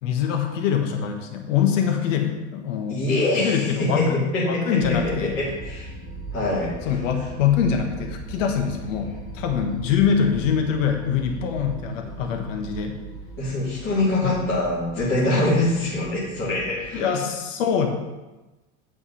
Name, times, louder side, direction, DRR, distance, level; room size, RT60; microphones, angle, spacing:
voice 1, 0.0-3.0 3.3-5.4 6.8-13.0 14.2-14.4 16.9-17.9, left 7 dB, 80° left, 4 dB, 1.4 m, -24 dB
voice 2, 2.9-5.9 6.3-7.0 13.4-17.2, left 2 dB, 35° left, -8 dB, 2.5 m, -24 dB
sound 1, 4.8-17.0, right 2 dB, 10° right, 2.0 m, -38 dB
8.8 x 5.5 x 5.5 m, 1.1 s
supercardioid pair, 125°, 38 cm